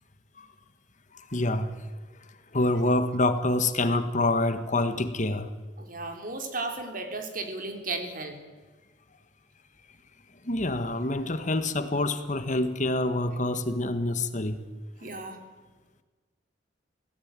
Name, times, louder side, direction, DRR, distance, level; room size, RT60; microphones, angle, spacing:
voice 1, 1.1-1.7 2.5-5.5 10.4-14.6, left 2 dB, 45° left, 1.6 m, -26 dB
voice 2, 5.8-8.4 15.0-15.4, right 3 dB, 50° right, 3.7 m, -34 dB
25.5 x 17.0 x 9.1 m
head